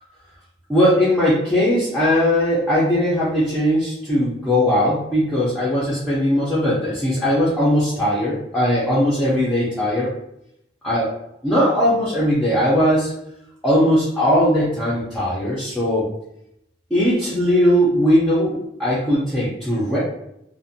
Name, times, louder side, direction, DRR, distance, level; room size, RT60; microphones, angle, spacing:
voice 1, 0.7-10.1 10.8-11.1 11.4-13.1 13.6-16.1 16.9-20.0, equal, 5° left, -10 dB, 0.5 m, -19 dB
2.5 x 2.1 x 2.6 m, 0.81 s
head